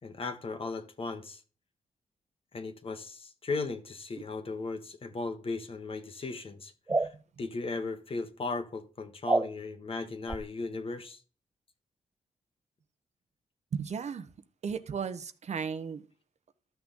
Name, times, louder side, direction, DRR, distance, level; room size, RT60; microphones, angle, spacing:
voice 1, 0.0-1.4 2.5-6.7 7.0-11.2, left 3 dB, 45° left, 1.6 m, -37 dB
sound 1, 6.9-7.1 9.3-9.5 10.3-10.4, right 2 dB, 20° right, 0.5 m, -27 dB
voice 2, 6.9-7.2 13.7-14.3 14.6-16.0, right 6 dB, 60° right, 1.0 m, -35 dB
13.0 x 6.3 x 3.8 m
cardioid pair, 75°, 13 cm